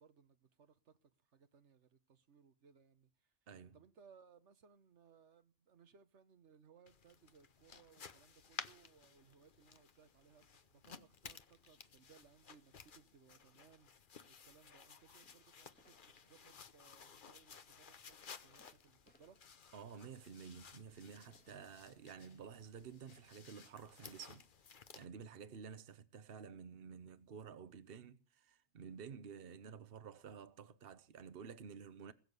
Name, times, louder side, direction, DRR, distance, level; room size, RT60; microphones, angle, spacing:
voice 1, 0.0-3.3 3.7-19.4, right 6 dB, 85° right, 1.4 m, -66 dB
voice 2, 3.5-3.8 19.7-24.4 24.9-32.1, right 6 dB, 60° right, 1.1 m, -52 dB
sound 1, 6.9-25.1, left 6 dB, 50° left, 1.0 m, -56 dB
sound 2, 15.2-15.4 15.7-16.5 17.2-17.8 18.5-18.7 19.0-19.8 21.3-22.0 23.1-23.7, left 1 dB, 10° left, 1.5 m, -74 dB
21.0 x 7.2 x 8.1 m
omnidirectional pair, 1.2 m